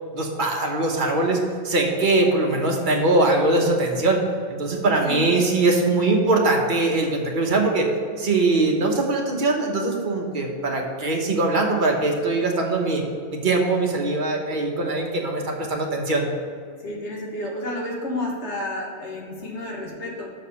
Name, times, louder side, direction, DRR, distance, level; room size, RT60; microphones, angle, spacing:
voice 1, 0.1-1.4 1.6-4.2 4.5-7.9 8.2-13.0 13.3-16.3, right 2 dB, 45° right, 0 dB, 1.3 m, -21 dB
voice 2, 16.8-20.3, left 1 dB, 75° left, -2 dB, 1.8 m, -31 dB
6.4 x 4.9 x 6.9 m, 2.1 s
omnidirectional pair, 1.2 m